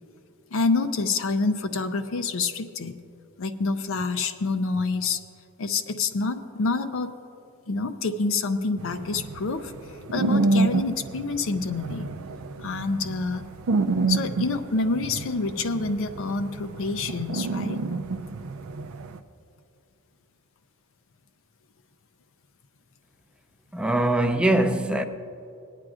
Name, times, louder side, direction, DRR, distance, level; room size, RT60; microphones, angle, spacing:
voice 1, 0.5-3.0 3.4-5.2 5.6-7.1 7.7-9.7 10.1-12.1 12.6-13.5 14.1-17.8, left 3 dB, 60° left, 0.5 m, -27 dB
sound 1, 8.8-19.2, right 3 dB, 65° right, 0.4 m, -28 dB
voice 2, 23.7-25.1, right 1 dB, 5° right, 0.4 m, -22 dB
21.5 x 9.0 x 2.4 m
head